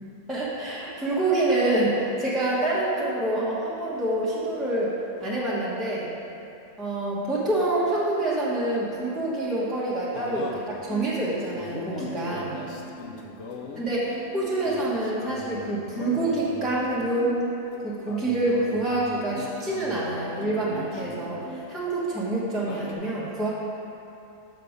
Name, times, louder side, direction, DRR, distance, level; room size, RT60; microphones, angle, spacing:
voice 1, 0.3-6.1 6.8-12.6 13.7-17.4 17.8-23.5, right 2 dB, ahead, -8 dB, 1.1 m, -27 dB
sound 1, 8.9-22.0 22.2-22.9, left 2 dB, 65° left, 1.0 m, -40 dB
6.7 x 6.2 x 5.0 m, 2.8 s
omnidirectional pair, 1.3 m